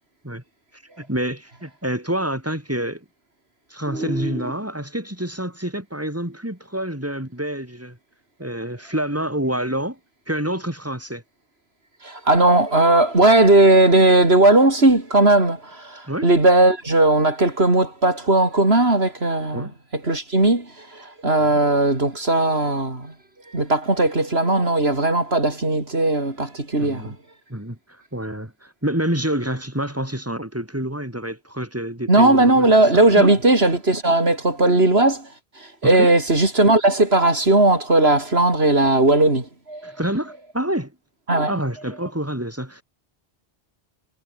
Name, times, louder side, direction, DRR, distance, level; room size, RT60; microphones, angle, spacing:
voice 1, 1.0-3.0 3.7-8.0 8.4-10.0 10.3-11.2 16.1-16.3 19.5-19.7 26.8-27.1 27.5-33.3 35.8-36.1 39.8-40.9 41.5-42.8, right 1 dB, 15° right, 4.9 m, -27 dB
voice 2, 3.9-4.4 12.0-19.7 20.0-23.1 23.5-27.1 32.1-35.3 35.8-39.9 41.3-41.5, right 2 dB, 70° right, 4.6 m, -17 dB
omnidirectional pair, 1.1 m